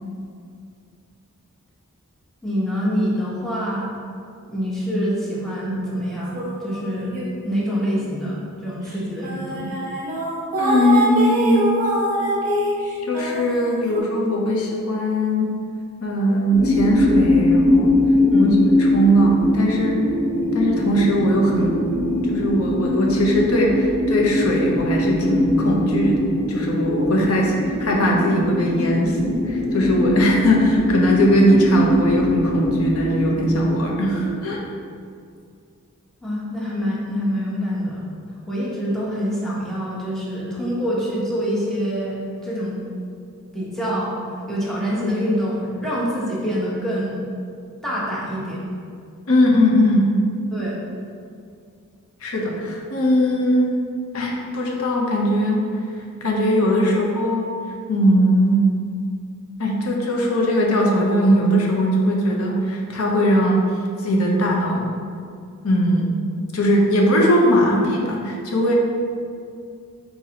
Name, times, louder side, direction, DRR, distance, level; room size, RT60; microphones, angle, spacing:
voice 1, 2.4-3.9 4.5-6.3 6.6-7.1 7.4-9.7 18.3-18.6 36.2-38.0 38.5-42.2 42.4-42.8 43.5-44.2 44.5-47.2 47.8-48.7 50.5-50.8, equal, ahead, -7 dB, 0.9 m, -25 dB
sound 1, 6.3-7.7 8.1-8.3 8.9-9.0 9.2-14.0, equal, 40° right, 0.9 m, -24 dB
voice 2, 10.6-11.7 13.1-15.6 16.0-18.0 18.3-18.5 18.8-20.0 20.5-21.9 22.3-29.2 29.4-34.6 49.3-50.1 52.2-53.8 54.1-55.7 56.2-57.5 57.9-58.7 59.6-63.6 64.0-64.9 65.6-66.2 66.5-68.7, equal, 80° left, -1 dB, 0.7 m, -19 dB
sound 2, 16.5-34.5, left 1 dB, 30° left, 0.8 m, -21 dB
4.1 x 4.0 x 2.8 m, 2.3 s
head